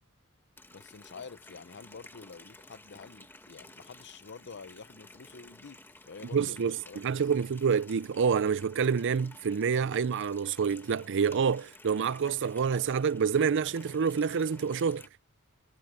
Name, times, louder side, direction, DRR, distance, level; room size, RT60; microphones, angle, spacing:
Water tap faucet, 0.6-15.1, left 2 dB, 10° left, 1.5 m, -53 dB
voice 1, 0.7-7.0, left 5 dB, 55° left, 0.8 m, -48 dB
voice 2, 6.3-15.0, right 6 dB, 55° right, 0.5 m, -27 dB
head